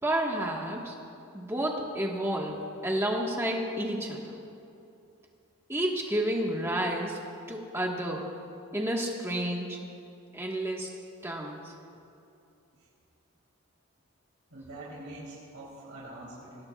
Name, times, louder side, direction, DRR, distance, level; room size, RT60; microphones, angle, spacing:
voice 1, 0.0-1.0 1.3-4.4 5.7-7.2 7.5-8.3 8.7-9.8 10.3-10.9 11.2-11.7, right 1 dB, 10° right, -1 dB, 1.5 m, -30 dB
voice 2, 14.5-16.6, right 1 dB, 75° right, -7 dB, 3.5 m, -44 dB
24.5 x 18.0 x 2.4 m, 2.7 s
head